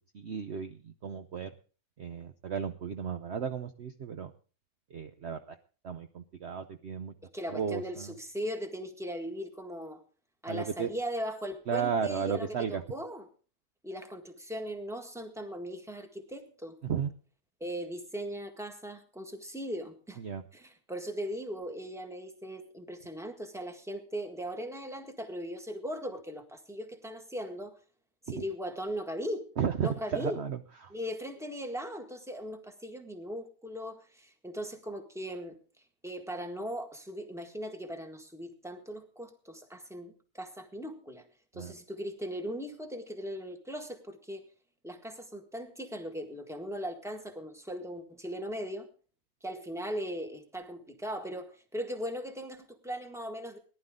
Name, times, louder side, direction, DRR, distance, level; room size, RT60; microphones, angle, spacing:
voice 1, 0.1-1.5 2.0-4.3 4.9-5.6 5.8-7.1 7.5-8.1 10.5-10.9 11.7-12.8 16.8-17.1 20.2-20.4 28.3-28.4 29.6-30.9 41.5-41.7, right 7 dB, 55° right, 8 dB, 0.9 m, -34 dB
voice 2, 7.3-10.0 10.4-13.3 13.8-16.8 17.6-20.2 20.5-27.7 28.2-29.5 29.8-30.4 30.9-35.6 36.0-41.2 41.5-44.4 44.8-48.9 49.4-53.6, equal, ahead, 6 dB, 1.6 m, -39 dB
19.0 x 11.5 x 3.8 m, 0.38 s
omnidirectional pair, 1.6 m